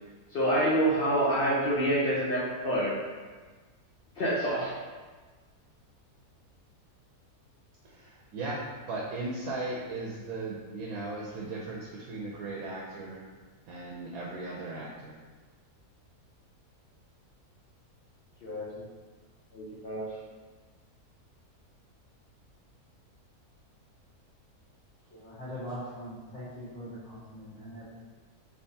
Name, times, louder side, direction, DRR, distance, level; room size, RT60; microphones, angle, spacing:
voice 1, 0.3-3.0 4.2-4.7 18.4-18.8 19.5-20.1, right 1 dB, 85° left, -6 dB, 0.4 m, -27 dB
voice 2, 7.8-13.2 13.7-15.2, right 2 dB, 75° right, -4 dB, 1.0 m, -37 dB
voice 3, 25.1-27.8, equal, 50° left, -12 dB, 1.5 m, -41 dB
3.4 x 3.0 x 2.7 m, 1.4 s
omnidirectional pair, 1.6 m